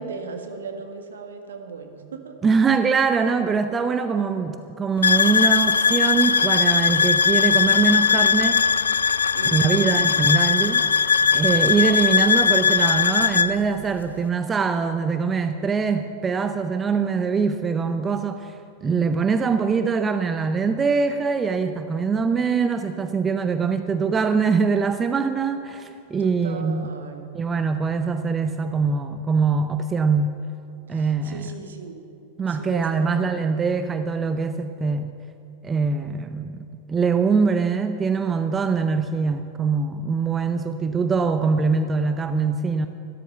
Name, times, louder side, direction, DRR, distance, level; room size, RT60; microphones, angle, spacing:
voice 1, 0.0-2.3 9.3-9.9 26.2-27.4 30.9-32.0 32.5-33.1, right 4 dB, 65° right, 5 dB, 1.6 m, -36 dB
voice 2, 2.4-8.6 9.4-18.5 18.8-26.9 27.3-30.4 30.9-31.5 32.4-35.1 35.6-42.9, right 5 dB, 20° right, 9 dB, 0.6 m, -23 dB
sound 1, 5.0-13.5, left 6 dB, 70° left, 0.4 m, -19 dB
14.0 x 13.0 x 5.7 m, 2.8 s
figure-of-eight pair, 90°, 0 cm